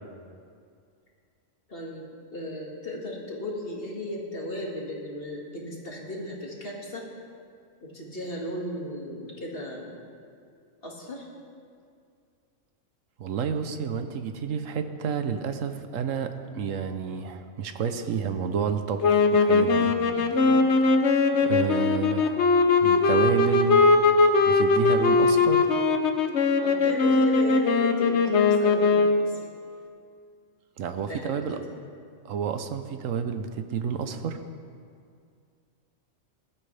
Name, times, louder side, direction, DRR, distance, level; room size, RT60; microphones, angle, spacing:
voice 1, 1.7-7.0 7.8-10.0 10.8-11.3 20.1-20.7 26.6-29.4 31.0-31.6, left 1 dB, 45° left, -2 dB, 2.2 m, -36 dB
voice 2, 13.2-19.9 21.4-22.5 22.8-23.8 24.5-25.7 30.8-31.6 32.2-34.4, right 6 dB, 80° right, 8 dB, 1.2 m, -30 dB
sound 1, 19.0-29.3, left 3 dB, 60° left, 1.1 m, -21 dB
20.0 x 12.0 x 3.4 m, 2.3 s
omnidirectional pair, 1.3 m